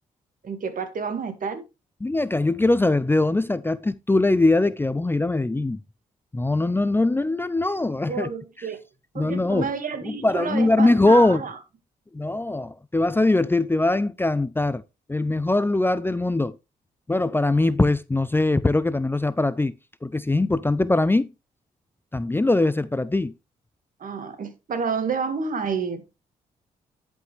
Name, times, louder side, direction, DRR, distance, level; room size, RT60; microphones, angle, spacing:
voice 1, 0.4-1.6 8.1-8.8 9.1-11.6 24.0-26.0, right 5 dB, 60° right, 1.9 m, -29 dB
voice 2, 2.0-5.8 6.3-8.3 8.6-8.7 9.2-9.7 10.0-11.4 12.1-14.8 15.1-16.6 17.1-19.7 20.0-21.3 22.1-23.3, left 2 dB, 15° left, 0.5 m, -21 dB
11.0 x 5.4 x 3.2 m
supercardioid pair, 55°, 16 cm